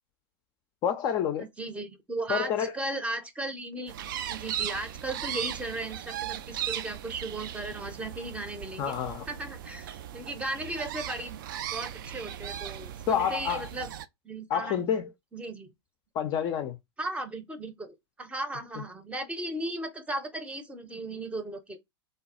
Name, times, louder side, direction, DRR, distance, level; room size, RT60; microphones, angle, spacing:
voice 1, 0.8-1.5 2.3-2.7 8.8-9.2 13.1-13.6 14.5-15.1 16.2-16.8, left 8 dB, 30° left, 0.4 m, -28 dB
voice 2, 1.4-8.9 9.3-11.4 11.7-13.9 14.2-14.8 15.3-15.7 17.0-21.8, right 2 dB, 10° right, 0.6 m, -36 dB
sound 1, 3.9-14.1, right 10 dB, 50° right, 0.4 m, -37 dB
3.4 x 2.3 x 4.1 m
figure-of-eight pair, 95°, 14 cm